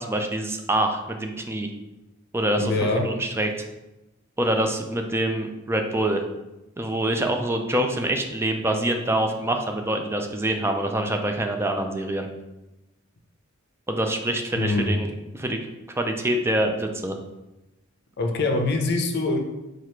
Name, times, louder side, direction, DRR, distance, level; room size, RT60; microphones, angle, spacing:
voice 1, 0.0-1.7 2.3-3.5 4.4-6.2 6.8-12.3 13.9-15.1 15.3-15.6 15.9-17.2, right 1 dB, 10° right, 4 dB, 0.4 m, -25 dB
voice 2, 2.6-3.1 14.6-14.9 18.2-19.4, left 2 dB, 55° left, 3 dB, 0.6 m, -23 dB
4.6 x 2.4 x 4.4 m, 0.98 s
head